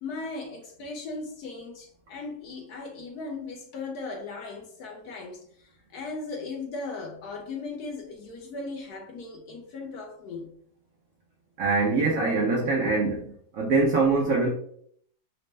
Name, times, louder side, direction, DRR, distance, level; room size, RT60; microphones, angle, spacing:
voice 1, 0.0-10.6, left 3 dB, 70° left, 1.0 m, -37 dB
voice 2, 11.6-14.5, right 3 dB, 65° right, 0.8 m, -24 dB
4.2 x 2.0 x 3.2 m
omnidirectional pair, 2.0 m